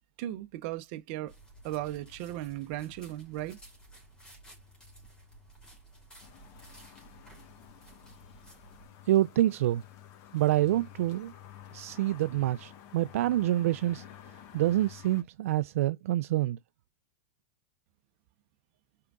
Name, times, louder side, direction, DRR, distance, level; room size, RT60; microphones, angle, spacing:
voice 1, 0.2-1.3 1.6-3.6, right 14 dB, 50° right, 0.8 m, -36 dB
sound 1, 1.3-8.9, right 1 dB, 10° left, 2.9 m, -54 dB
sound 2, 6.2-15.2, left 10 dB, 40° left, 1.2 m, -51 dB
voice 2, 9.1-9.8 10.3-11.3 11.7-14.0 14.5-16.6, right 14 dB, 75° right, 0.3 m, -27 dB
5.6 x 3.7 x 2.3 m
supercardioid pair, 145°, 8 cm